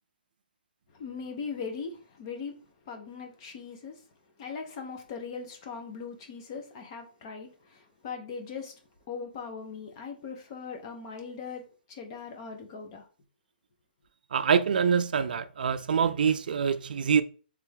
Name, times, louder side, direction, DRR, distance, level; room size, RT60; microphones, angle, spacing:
voice 1, 0.9-2.6 2.8-4.0 4.4-8.8 9.1-13.1, left 5 dB, 25° left, 0.7 m, -40 dB
voice 2, 14.3-17.2, right 6 dB, 55° right, 0.4 m, -25 dB
3.4 x 3.3 x 3.4 m
hypercardioid pair, 170°, 6 cm